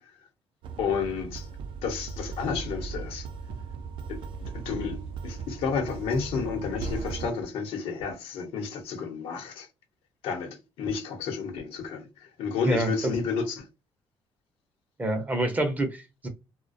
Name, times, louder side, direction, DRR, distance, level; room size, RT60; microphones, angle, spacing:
sound 1, 0.6-7.3, right 5 dB, 60° right, 0.4 m, -37 dB
voice 1, 0.8-1.5 1.8-3.3 4.1-4.2 4.6-9.7 10.2-13.7, left 5 dB, 75° left, 0.9 m, -31 dB
voice 2, 12.6-13.1 15.0-16.3, right 1 dB, 15° right, 0.6 m, -27 dB
2.3 x 2.1 x 2.5 m
cardioid pair, 130°, 9 cm